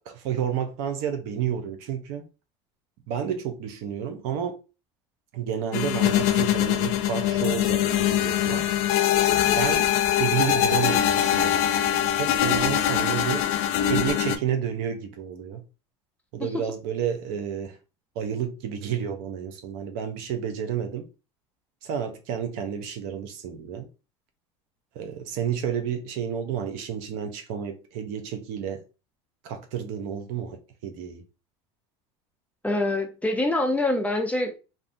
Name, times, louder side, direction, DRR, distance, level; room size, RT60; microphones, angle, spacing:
voice 1, 0.1-2.3 3.1-4.6 5.3-8.7 9.4-11.9 12.1-13.5 13.8-15.6 16.3-17.8 18.2-21.1 21.8-23.9 24.9-28.8 29.4-31.2, right 8 dB, 70° right, 0.6 m, -30 dB
sound 1, 5.7-14.4, left 11 dB, 65° left, 0.4 m, -23 dB
voice 2, 32.6-34.6, left 2 dB, 10° left, 0.5 m, -25 dB
2.5 x 2.1 x 2.5 m
supercardioid pair, 95°, 15 cm